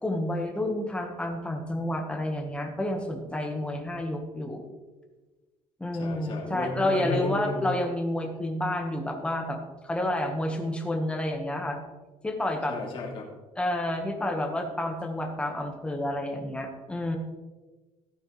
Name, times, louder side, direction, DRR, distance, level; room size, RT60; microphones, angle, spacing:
voice 1, 0.0-4.6 5.8-9.6 9.8-11.8 12.2-12.8 13.5-17.2, left 1 dB, 10° left, 3 dB, 1.4 m, -29 dB
voice 2, 5.9-7.7 12.7-13.3, left 3 dB, 40° left, -1 dB, 2.8 m, -33 dB
15.0 x 8.8 x 3.2 m, 1.3 s
cardioid pair, 160°, 13 cm